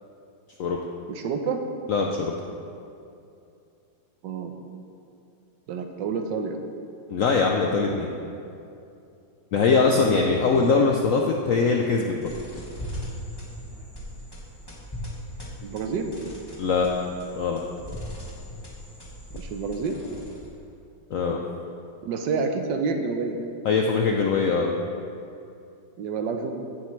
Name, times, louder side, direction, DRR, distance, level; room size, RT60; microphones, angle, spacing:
voice 1, 1.1-1.6 4.2-4.5 5.7-6.6 9.9-10.2 15.6-16.1 19.4-20.0 22.0-23.5 26.0-26.5, right 5 dB, 75° right, 5 dB, 1.4 m, -28 dB
voice 2, 1.9-2.3 7.1-8.1 9.5-12.3 16.6-17.6 21.1-21.4 23.6-24.7, left 4 dB, 70° left, 0 dB, 0.7 m, -22 dB
sound 1, 12.2-20.6, equal, 15° left, 1.4 m, -39 dB
15.0 x 7.4 x 3.2 m, 2.6 s
omnidirectional pair, 2.1 m